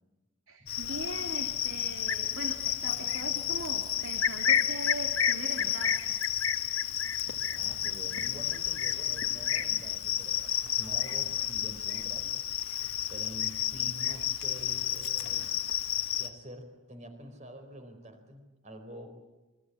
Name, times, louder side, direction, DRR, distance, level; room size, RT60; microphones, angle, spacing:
voice 1, 0.5-5.9, right 2 dB, 70° right, 4 dB, 2.7 m, -40 dB
Cricket, 0.7-16.3, left 10 dB, 80° left, 1.6 m, -31 dB
voice 2, 7.5-12.5 13.1-15.6 16.2-19.1, equal, 35° right, 7 dB, 4.3 m, -47 dB
28.0 x 23.0 x 8.4 m, 1.1 s
head